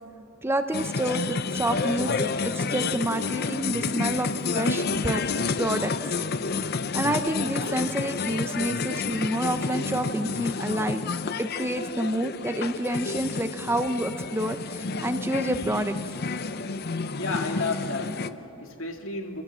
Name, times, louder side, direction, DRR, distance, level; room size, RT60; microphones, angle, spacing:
voice 1, 0.4-2.3 2.5-5.2 5.6-5.9 6.9-11.0 11.4-16.0, right 1 dB, 10° right, 8 dB, 0.6 m, -28 dB
sound 1, 0.7-18.3, left 4 dB, 45° left, 0.6 m, -30 dB
voice 2, 17.2-19.4, left 3 dB, 65° left, 3 dB, 2.2 m, -32 dB
27.5 x 15.5 x 7.5 m, 2.9 s
head